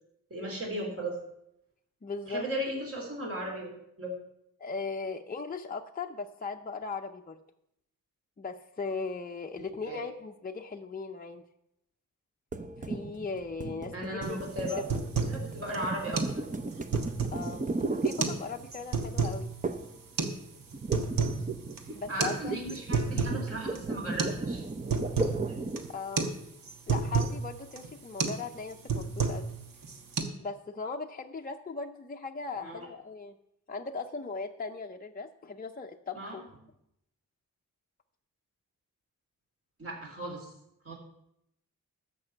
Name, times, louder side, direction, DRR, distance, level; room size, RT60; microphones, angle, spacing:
voice 1, 0.3-1.2 2.3-3.7 4.0-4.1 9.6-10.1 13.9-14.8 15.3-16.2 22.1-24.6 25.5-25.6 32.6-32.9 36.1-36.4 39.8-40.5 40.8-40.9, right 1 dB, 45° right, -1 dB, 3.8 m, -36 dB
voice 2, 2.0-2.5 4.6-7.4 8.4-11.4 12.8-14.4 17.3-17.6 18.0-19.5 21.9-22.6 25.9-26.3 26.9-29.5 30.4-33.3 33.7-36.4, left 4 dB, 25° left, 3 dB, 0.6 m, -38 dB
sound 1, 12.5-18.8 19.6-20.0 20.3-26.0, right 3 dB, 25° right, 0.8 m, -36 dB
sound 2, 14.2-14.4 14.7-15.4 15.7-15.8 16.2-16.4 16.7-17.5 18.1-18.4 18.7-19.4 20.2-20.3 20.7-21.4 21.7-21.8 22.2-22.4 22.7-23.4 23.8-23.9 24.2-24.4 24.7-25.4 25.8-25.9 26.2-26.4 26.6-27.4 27.8-27.9 28.2-28.4 28.7-29.5 29.8-30.2, right 4 dB, 90° right, 1.3 m, -30 dB
13.5 x 5.4 x 7.1 m, 0.79 s
wide cardioid pair, 105°, 33 cm